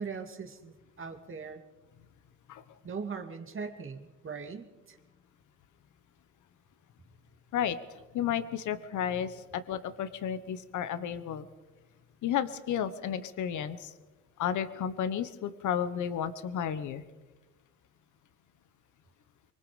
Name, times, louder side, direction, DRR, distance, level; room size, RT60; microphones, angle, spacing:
voice 1, 0.0-1.6 2.8-5.0, right 5 dB, 45° right, 5 dB, 2.5 m, -40 dB
voice 2, 8.1-11.5 12.2-13.9 14.4-17.0, left 9 dB, 75° left, 11 dB, 1.4 m, -32 dB
25.0 x 24.0 x 5.2 m, 1.2 s
cardioid pair, 90°, 30 cm